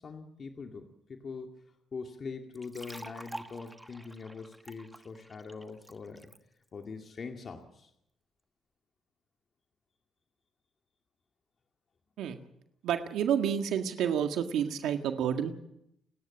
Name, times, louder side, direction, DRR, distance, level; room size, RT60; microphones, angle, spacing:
voice 1, 0.0-1.5 1.9-6.3 6.7-7.9, left 4 dB, 45° left, 3 dB, 2.2 m, -43 dB
sound 1, 2.5-6.4, right 1 dB, 5° right, 1.4 m, -47 dB
voice 2, 12.8-15.5, right 8 dB, 80° right, 6 dB, 1.8 m, -29 dB
30.0 x 10.5 x 8.7 m, 0.78 s
cardioid pair, 90°, 0 cm